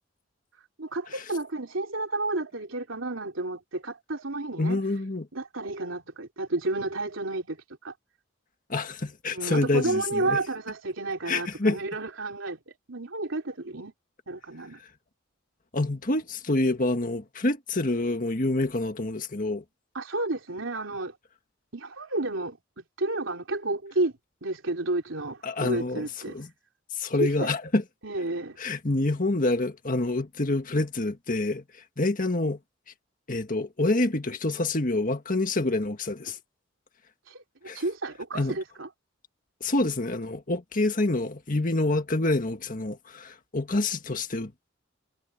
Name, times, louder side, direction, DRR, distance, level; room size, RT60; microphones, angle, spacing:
voice 1, 0.8-4.8 5.3-7.6 7.8-7.9 9.3-13.9 14.3-14.8 19.9-21.1 21.7-24.1 24.4-26.3 27.2-27.5 28.0-28.6 37.3-37.4 37.7-38.9, right 2 dB, 80° right, 3.1 m, -31 dB
voice 2, 4.6-5.3 8.7-10.4 11.2-11.8 15.7-19.6 25.4-26.5 26.9-27.8 28.6-31.6 32.0-32.6 33.3-36.4 37.7-37.8 38.3-38.5 39.6-44.7, left 2 dB, 45° left, 1.7 m, -27 dB
head